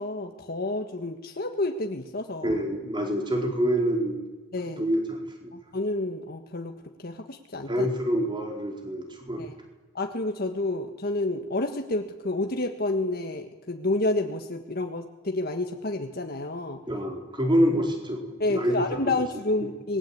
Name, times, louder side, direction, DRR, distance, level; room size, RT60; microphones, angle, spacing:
voice 1, 0.0-2.6 4.5-4.8 5.7-6.7 7.0-7.9 9.4-9.5 9.9-16.8 18.4-20.0, left 2 dB, 55° left, 4 dB, 1.7 m, -29 dB
voice 2, 2.4-4.2 4.8-5.6 7.7-9.5 16.9-19.2 19.6-19.7, equal, 25° right, 1 dB, 4.6 m, -27 dB
27.0 x 21.0 x 8.8 m, 1.2 s
head